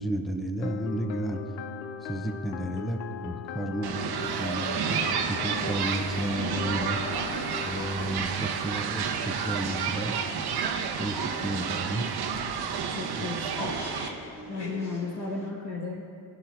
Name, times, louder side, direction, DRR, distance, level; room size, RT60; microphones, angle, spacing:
voice 1, 0.0-1.4 2.0-7.0 7.6-10.2 11.0-12.1 13.2-13.3, right 1 dB, ahead, 5 dB, 0.7 m, -32 dB
sound 1, 0.6-8.2, left 8 dB, 80° left, 0.6 m, -39 dB
sound 2, 3.8-14.1, right 7 dB, 50° right, 1.0 m, -31 dB
sound 3, 4.7-15.5, equal, 55° left, 2.9 m, -44 dB
voice 2, 12.9-13.8 14.5-16.0, left 4 dB, 35° left, -4 dB, 1.6 m, -34 dB
17.0 x 10.5 x 2.6 m, 2.5 s
hypercardioid pair, 60°, 48 cm